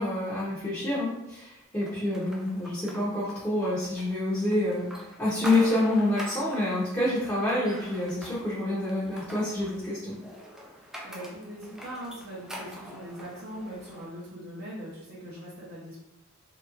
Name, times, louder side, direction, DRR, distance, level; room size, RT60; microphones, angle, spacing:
voice 1, 0.0-4.9 5.2-10.1, left 1 dB, 15° left, -10 dB, 0.8 m, -27 dB
sound 1, 1.8-14.1, equal, 5° right, 0.3 m, -44 dB
voice 2, 10.8-16.0, equal, 45° right, -7 dB, 0.7 m, -41 dB
3.2 x 2.9 x 2.4 m, 0.89 s
head